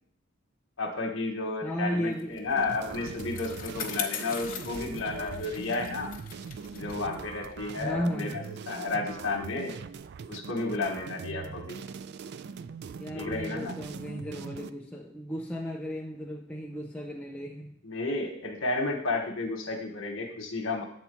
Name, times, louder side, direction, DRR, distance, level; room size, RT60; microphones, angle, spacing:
voice 1, 0.8-6.1 6.7-9.8 10.3-11.8 13.1-13.7 17.8-20.8, left 3 dB, 70° left, 1 dB, 1.3 m, -32 dB
voice 2, 1.6-2.4 7.8-8.4 11.3-11.7 13.0-17.8, equal, 5° left, -1 dB, 0.5 m, -35 dB
Bicycle, 2.2-8.9, left 6 dB, 45° left, 1.1 m, -41 dB
sound 1, 2.5-14.7, right 5 dB, 55° right, 0.3 m, -42 dB
8.1 x 4.3 x 6.9 m, 0.68 s
head